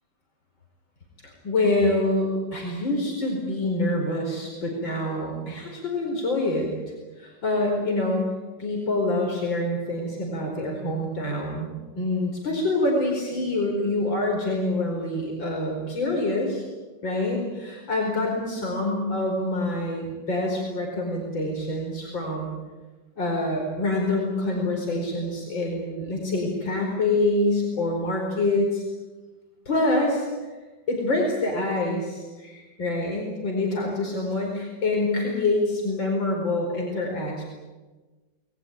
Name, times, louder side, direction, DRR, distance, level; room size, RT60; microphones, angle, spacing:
voice 1, 1.4-6.7 7.2-8.3 8.6-16.6 17.0-22.5 23.2-28.8 29.7-30.3 30.9-37.4, left 2 dB, 90° left, 0 dB, 5.5 m, -26 dB
27.5 x 20.0 x 9.4 m, 1.3 s
omnidirectional pair, 2.0 m